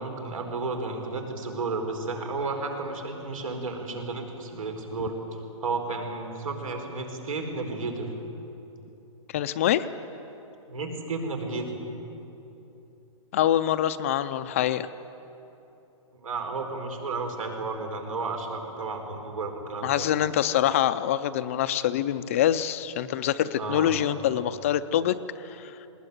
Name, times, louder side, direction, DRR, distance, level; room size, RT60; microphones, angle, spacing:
voice 1, 0.0-5.2 5.6-8.1 10.7-11.7 16.2-20.1 23.6-23.9, right 3 dB, 85° right, 4 dB, 4.6 m, -32 dB
voice 2, 9.3-9.9 13.3-14.9 19.8-25.2 25.4-25.7, left 11 dB, 25° left, 12 dB, 0.4 m, -25 dB
20.0 x 19.5 x 9.4 m, 3.0 s
hypercardioid pair, 170°, 17 cm